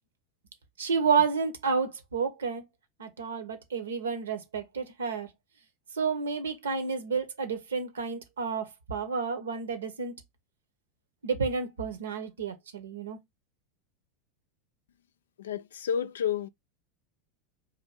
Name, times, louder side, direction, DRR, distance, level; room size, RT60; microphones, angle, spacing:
voice 1, 0.8-2.6 3.0-5.3 6.0-10.1 11.2-13.2, right 5 dB, 85° right, 0.9 m, -30 dB
voice 2, 15.4-16.5, left 8 dB, 80° left, 0.3 m, -30 dB
3.7 x 2.6 x 3.5 m
hypercardioid pair, 95°, 0 cm